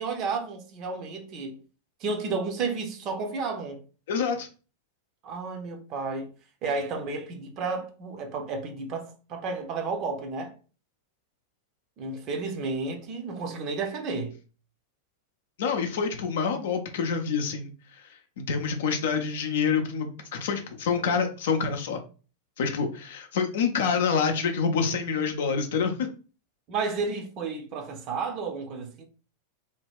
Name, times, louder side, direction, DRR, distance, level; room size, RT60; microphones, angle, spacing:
voice 1, 0.0-1.6 2.0-3.8 5.2-6.3 6.6-10.5 12.0-14.4 26.7-29.1, right 4 dB, 35° right, 0.6 m, -32 dB
voice 2, 4.1-4.5 15.6-22.0 22.6-26.1, left 6 dB, 55° left, 0.5 m, -27 dB
2.8 x 2.2 x 3.4 m
figure-of-eight pair, 90°, 0 cm